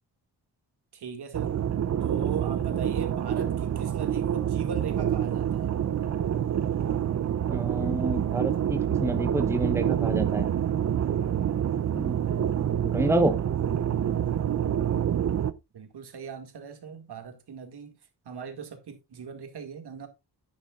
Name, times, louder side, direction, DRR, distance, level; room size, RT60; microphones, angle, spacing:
voice 1, 0.9-1.5 2.0-5.7 15.7-17.9 18.2-20.1, right 6 dB, 70° right, 2.1 m, -40 dB
sound 1, 1.3-15.5, right 9 dB, 45° right, 0.6 m, -27 dB
voice 2, 7.5-10.5 11.9-13.4, right 1 dB, 5° right, 0.8 m, -29 dB
10.5 x 9.4 x 2.4 m
wide cardioid pair, 125°, 41 cm